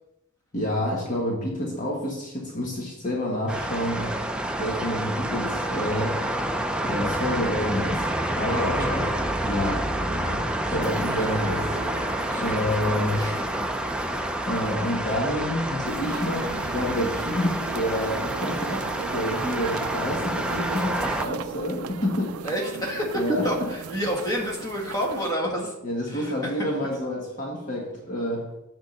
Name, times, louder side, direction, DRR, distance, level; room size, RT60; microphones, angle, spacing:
voice 1, 0.5-4.2 4.6-6.2 6.8-8.1 8.3-9.1 9.4-11.7 12.4-13.2 14.4-18.8 19.1-22.4 23.1-23.5 25.8-28.5, left 1 dB, 35° left, -2 dB, 1.4 m, -28 dB
sound 1, 3.5-21.3, right 1 dB, 5° right, 0.4 m, -28 dB
voice 2, 8.5-9.2 10.7-11.5 12.3-12.7 13.1-13.4 22.4-25.7 26.1-26.7, equal, 15° left, -3 dB, 1.7 m, -30 dB
sound 2, 10.8-17.6 18.0-18.1, right 2 dB, 30° right, 0.9 m, -41 dB
sound 3, 15.8-25.3, right 7 dB, 75° right, 0.4 m, -37 dB
8.1 x 3.7 x 6.4 m, 0.92 s
head